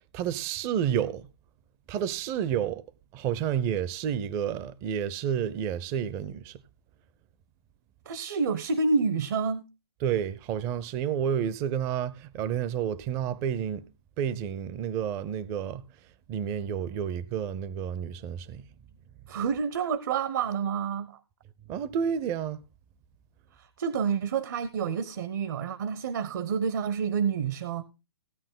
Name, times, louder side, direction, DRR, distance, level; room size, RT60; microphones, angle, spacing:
voice 1, 0.1-1.3 1.9-2.8 3.1-6.6 10.0-13.8 14.2-15.8 16.3-18.6 21.7-22.6, right 9 dB, 20° right, 0.5 m, -30 dB
voice 2, 8.1-9.6 19.3-21.2 23.6-27.8, right 5 dB, 50° right, 0.8 m, -28 dB
16.0 x 8.8 x 3.7 m
figure-of-eight pair, 135°, 13 cm